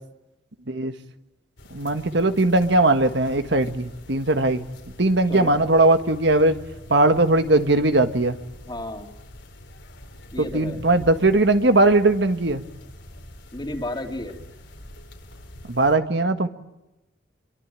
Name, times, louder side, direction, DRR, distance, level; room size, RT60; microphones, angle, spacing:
sound 1, 1.6-16.0, left 1 dB, 85° left, 4.7 m, -44 dB
voice 1, 1.7-4.6 5.0-6.6 6.9-8.4 10.4-12.6 15.6-16.5, right 2 dB, 70° right, 9 dB, 1.6 m, -19 dB
voice 2, 8.6-9.1 10.3-10.8 13.5-14.3, left 1 dB, 25° left, 4 dB, 2.8 m, -32 dB
27.0 x 23.0 x 8.9 m, 0.95 s
head